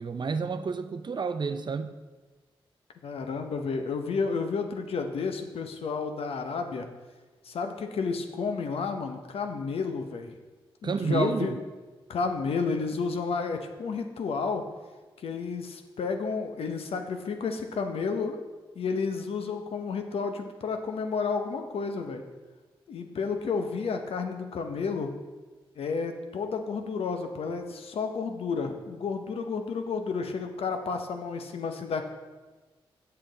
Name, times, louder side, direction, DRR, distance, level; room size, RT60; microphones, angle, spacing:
voice 1, 0.0-1.9 10.8-11.6, right 5 dB, 50° right, 10 dB, 0.5 m, -30 dB
voice 2, 3.0-6.9 7.4-10.3 10.8-11.6 12.1-14.6 15.2-18.4 18.8-22.2 22.9-25.1 25.8-32.1, left 5 dB, 75° left, 6 dB, 0.8 m, -31 dB
7.5 x 6.7 x 3.9 m, 1.3 s
cardioid pair, 50°, 10 cm